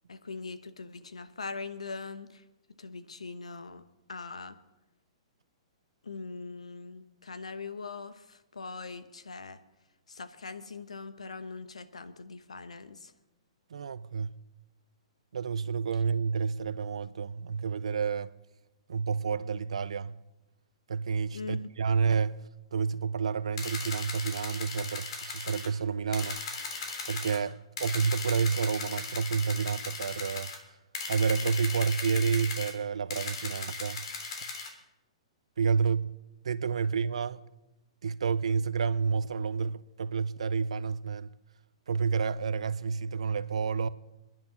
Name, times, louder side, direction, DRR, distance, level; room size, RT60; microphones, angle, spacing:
voice 1, 0.1-2.4 2.8-3.8 4.1-4.6 6.0-9.6 10.1-13.1 21.3-21.7, left 4 dB, 85° left, 1.0 m, -41 dB
voice 2, 13.7-14.3 15.3-18.3 18.9-20.2 20.9-22.4 22.7-26.4 27.1-30.5 31.1-34.1 35.6-36.1 36.4-37.4 38.0-41.3 41.9-43.9, right 5 dB, 75° right, 0.6 m, -29 dB
sound 1, 23.6-25.7 26.1-27.4 27.8-30.6 30.9-32.7 33.1-34.7, left 4 dB, 55° left, 3.3 m, -37 dB
27.5 x 10.5 x 3.9 m
hypercardioid pair, 120°, 3 cm